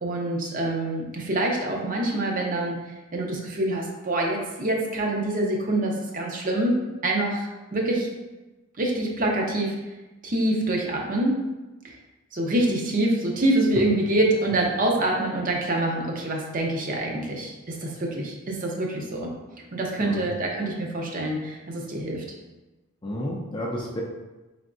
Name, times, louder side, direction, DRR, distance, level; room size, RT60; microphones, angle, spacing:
voice 1, 0.0-2.8 3.1-8.1 8.8-9.8 10.2-11.4 11.8-12.0 12.3-19.3 19.7-22.2, right 1 dB, 40° right, -1 dB, 0.6 m, -26 dB
voice 2, 23.0-24.0, left 1 dB, 25° left, -2 dB, 0.5 m, -30 dB
3.9 x 3.4 x 2.5 m, 1.1 s
head